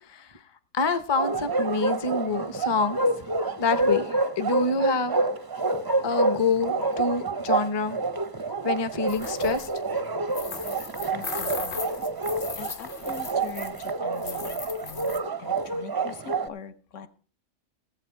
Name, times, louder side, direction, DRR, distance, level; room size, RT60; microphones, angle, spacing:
voice 1, 0.7-3.0 3.6-4.1 4.4-5.2 6.0-8.0 8.6-9.7, left 4 dB, 30° left, 11 dB, 0.5 m, -26 dB
Bark, 1.1-16.5, right 2 dB, 35° right, 0.4 m, -28 dB
sound 1, 9.1-9.8 10.3-13.9 14.2-15.2, left 5 dB, 50° left, 1.0 m, -38 dB
voice 2, 11.1-12.0 12.6-17.1, left 7 dB, 80° left, 9 dB, 1.3 m, -43 dB
16.5 x 7.8 x 4.6 m, 0.42 s
omnidirectional pair, 1.3 m